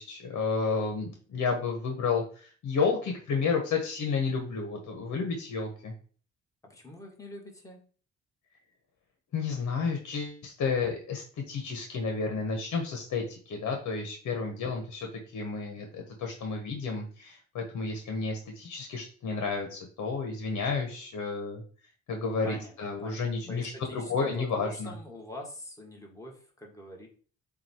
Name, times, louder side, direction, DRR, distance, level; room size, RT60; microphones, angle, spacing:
voice 1, 0.0-5.9 9.3-21.6 22.1-24.9, left 4 dB, 70° left, 2 dB, 1.4 m, -31 dB
voice 2, 6.6-7.8 22.4-22.7 23.0-27.1, left 1 dB, 10° left, 0 dB, 2.0 m, -45 dB
7.5 x 2.8 x 4.6 m, 0.42 s
cardioid pair, 90°, 30 cm